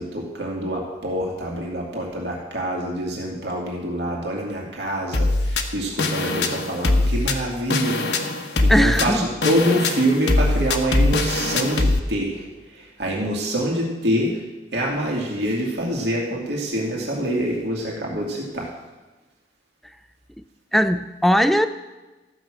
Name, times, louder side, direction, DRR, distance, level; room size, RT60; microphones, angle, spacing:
voice 1, 0.0-12.4 12.7-14.4 14.7-18.7, equal, 75° right, -3 dB, 2.4 m, -25 dB
sound 1, 5.1-12.0, left 2 dB, 80° left, 1.1 m, -22 dB
voice 2, 8.7-9.3 20.7-21.7, equal, ahead, 11 dB, 0.4 m, -19 dB
14.0 x 6.2 x 7.5 m, 1.2 s
head